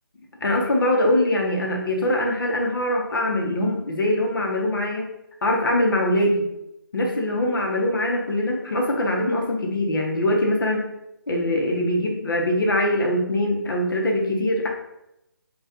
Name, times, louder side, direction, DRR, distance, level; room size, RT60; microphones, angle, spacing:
voice 1, 0.4-5.1 5.4-6.5 6.9-10.9 11.3-14.7, left 1 dB, 65° left, 0 dB, 0.9 m, -22 dB
4.1 x 2.5 x 2.5 m, 0.83 s
figure-of-eight pair, 160°, 12 cm